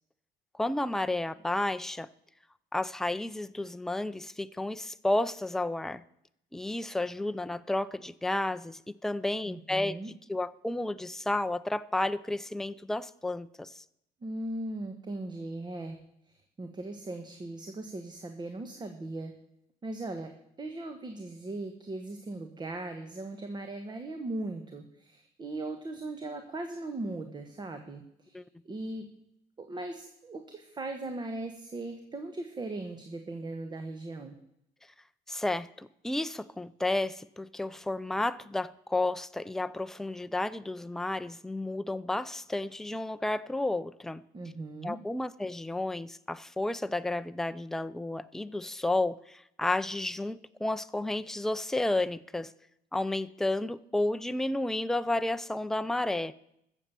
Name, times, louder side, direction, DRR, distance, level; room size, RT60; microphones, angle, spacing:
voice 1, 0.6-2.1 2.7-6.0 6.5-10.0 10.3-13.8 28.3-28.4 35.3-44.2 44.8-52.5 52.9-56.3, left 2 dB, ahead, 12 dB, 0.4 m, -32 dB
voice 2, 9.4-10.1 14.2-16.0 16.3-19.3 19.8-29.1 29.6-34.4 44.3-45.0, right 2 dB, 25° right, 7 dB, 1.3 m, -39 dB
14.0 x 7.3 x 6.9 m, 0.76 s
cardioid pair, 110°, 17 cm